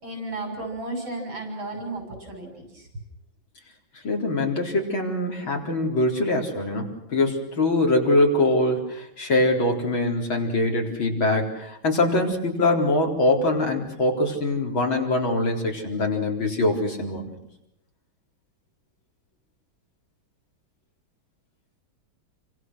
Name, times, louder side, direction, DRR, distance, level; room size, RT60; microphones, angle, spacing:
voice 1, 0.0-2.9, right 2 dB, 90° right, 4 dB, 7.4 m, -34 dB
voice 2, 4.0-17.3, left 2 dB, 90° left, 1 dB, 5.1 m, -23 dB
29.0 x 25.5 x 6.4 m, 0.82 s
omnidirectional pair, 2.1 m